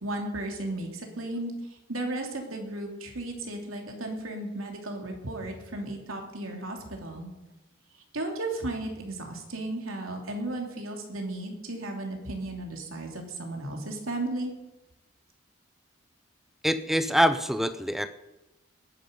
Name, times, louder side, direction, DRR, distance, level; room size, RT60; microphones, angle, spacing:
voice 1, 0.0-7.3 8.1-14.5, right 2 dB, 90° right, 2 dB, 3.1 m, -35 dB
voice 2, 16.6-18.1, equal, ahead, 11 dB, 0.5 m, -24 dB
19.5 x 10.5 x 5.4 m, 1.0 s
head